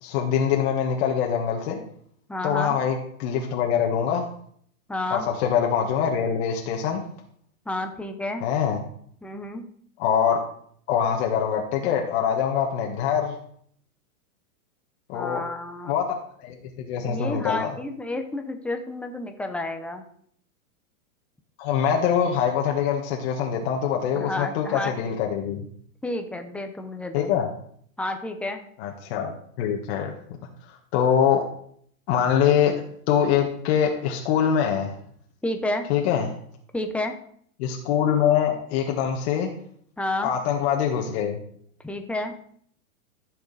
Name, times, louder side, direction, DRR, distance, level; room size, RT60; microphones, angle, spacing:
voice 1, 0.0-1.8 2.4-4.3 5.1-7.0 8.4-8.8 10.0-10.4 10.9-13.3 15.1-15.4 15.8-16.1 16.4-17.7 21.6-25.7 27.1-27.5 28.8-30.1 30.7-31.4 32.1-35.0 35.9-36.3 37.6-39.5 40.2-41.4, left 8 dB, 45° left, 1 dB, 1.7 m, -24 dB
voice 2, 2.3-2.8 4.9-5.3 7.7-8.4 9.2-9.6 15.1-15.9 17.0-20.0 24.1-24.9 26.0-27.3 28.0-28.6 35.4-35.9 36.7-37.1 40.0-40.3 41.8-42.3, left 2 dB, 5° left, 5 dB, 0.9 m, -30 dB
14.0 x 6.7 x 4.2 m, 0.63 s
hypercardioid pair, 145°, 43 cm